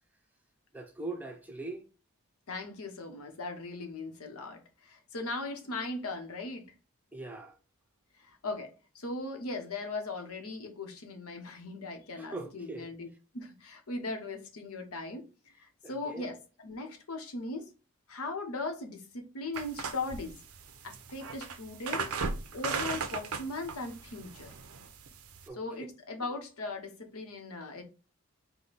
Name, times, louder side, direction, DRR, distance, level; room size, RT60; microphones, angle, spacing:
voice 1, 0.7-1.8 7.1-7.6 12.2-12.9 15.8-16.3 25.5-25.6, right 2 dB, 5° right, 0.5 m, -41 dB
voice 2, 2.5-6.7 8.2-13.1 13.3-15.2 15.6-17.7 18.1-20.3 20.8-22.1 22.5-24.5 25.5-27.8, left 3 dB, 90° left, 1.0 m, -39 dB
sound 1, 19.5-25.5, right 5 dB, 90° right, 0.6 m, -37 dB
5.0 x 2.2 x 4.0 m
head